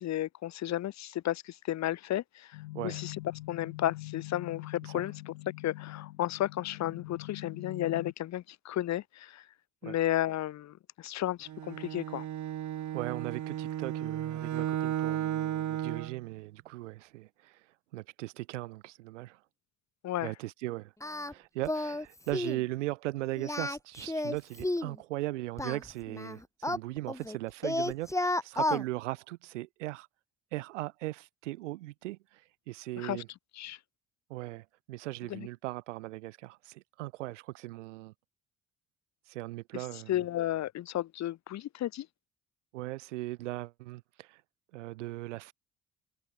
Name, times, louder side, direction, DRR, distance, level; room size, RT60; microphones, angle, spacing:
voice 1, 0.0-2.5 2.8-3.2 3.5-5.3 5.6-9.4 9.8-12.2 20.0-20.3 33.0-33.2 33.6-33.8 35.3-35.5 40.1-42.1, left 13 dB, 50° left, 0.6 m, -33 dB
sound 1, 2.5-8.1, left 19 dB, 90° left, 4.3 m, -43 dB
Bowed string instrument, 11.5-16.2, right 11 dB, 55° right, 1.3 m, -34 dB
voice 2, 12.9-17.6 17.9-19.4 20.2-20.9 21.3-30.1 30.5-33.3 34.3-38.1 39.3-40.2 42.7-44.4 44.7-45.5, right 18 dB, 90° right, 2.7 m, -38 dB
Singing, 21.0-21.3 21.7-22.1 22.3-22.6 23.4-25.0 25.6-27.4 27.6-28.8, left 1 dB, 10° left, 1.7 m, -32 dB
hypercardioid pair, 55°, 35 cm